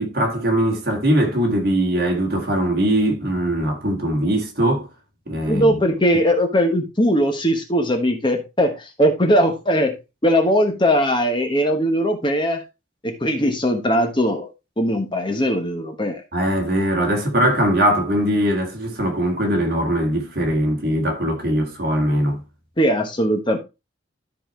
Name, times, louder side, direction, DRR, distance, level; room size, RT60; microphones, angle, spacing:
voice 1, 0.0-4.9 5.3-5.8 16.3-22.4, right 1 dB, 50° right, 2.1 m, -21 dB
voice 2, 5.5-10.0 10.2-12.6 13.0-14.5 14.8-16.2 22.8-23.6, equal, 25° left, 1.1 m, -20 dB
13.0 x 4.4 x 3.1 m
head